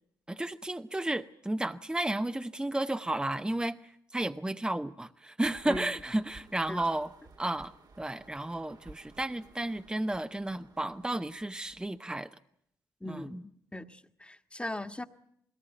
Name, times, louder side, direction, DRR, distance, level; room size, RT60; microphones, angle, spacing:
voice 1, 0.3-3.8 4.1-7.1 7.4-12.3 13.1-13.4, right 1 dB, 10° right, 9 dB, 0.9 m, -33 dB
sound 1, 5.4-12.0, right 4 dB, 55° right, 1.8 m, -54 dB
voice 2, 13.0-15.0, left 1 dB, 15° left, 9 dB, 1.6 m, -39 dB
20.5 x 18.5 x 9.1 m, 0.70 s
supercardioid pair, 50°, 8 cm